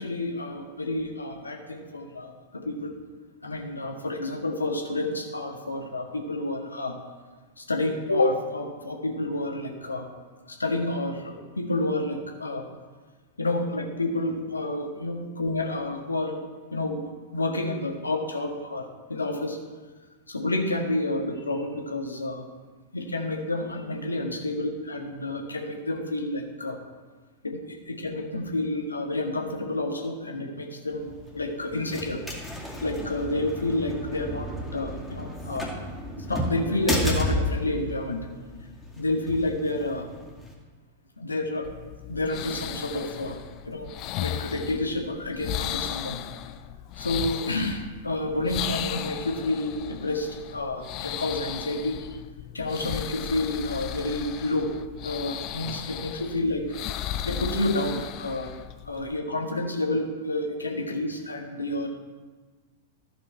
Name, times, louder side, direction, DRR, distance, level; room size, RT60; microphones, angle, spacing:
voice 1, 0.0-2.9 3.4-6.9 7.6-10.1 10.5-12.6 13.4-16.3 16.7-17.0 17.3-18.8 19.1-19.6 20.3-22.4 22.9-26.8 27.4-32.2 32.8-35.7 36.2-38.2 39.0-40.1 41.2-41.7 42.1-43.4 43.6-43.9 44.2-46.2 47.0-52.2 52.5-54.7 55.0-56.6 57.2-58.5 58.8-61.9, left 2 dB, 80° left, 2 dB, 1.5 m, -29 dB
sound 1, 30.9-40.5, equal, 5° left, 2.3 m, -33 dB
sound 2, 41.6-59.2, left 11 dB, 40° left, 0.4 m, -36 dB
14.0 x 5.5 x 4.4 m, 1.4 s
figure-of-eight pair, 95°, 0 cm